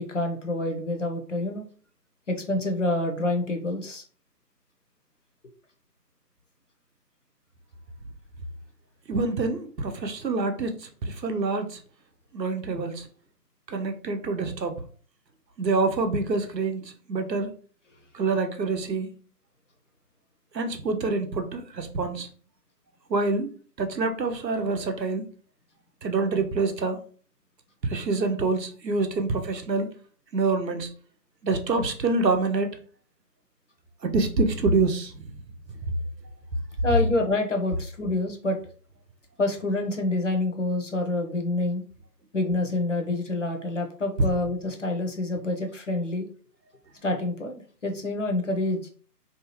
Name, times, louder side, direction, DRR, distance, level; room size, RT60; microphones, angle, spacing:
voice 1, 0.0-1.6 2.3-4.0 36.8-38.6 39.4-41.8 42.3-46.3 47.0-48.9, left 2 dB, 50° left, 4 dB, 0.6 m, -27 dB
voice 2, 9.1-11.8 12.3-13.0 13.7-14.7 15.6-17.5 18.1-19.1 20.5-22.3 23.1-23.5 23.8-25.2 26.0-27.0 27.8-29.9 30.3-30.9 31.4-32.7 34.0-35.1, right 3 dB, 90° right, 6 dB, 0.7 m, -26 dB
2.7 x 2.3 x 2.9 m, 0.41 s
figure-of-eight pair, 155°, 49 cm